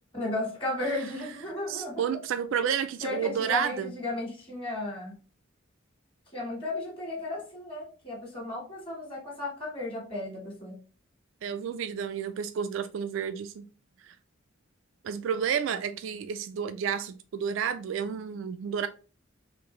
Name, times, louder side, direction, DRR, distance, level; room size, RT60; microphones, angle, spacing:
voice 1, 0.1-2.2 2.6-2.7 3.0-5.1 6.3-10.8, left 2 dB, 25° left, 1.4 m, -34 dB
voice 2, 1.7-3.9 11.4-13.6 14.0-14.2 15.0-18.9, right 7 dB, 75° right, 0.3 m, -31 dB
3.9 x 2.6 x 3.0 m
head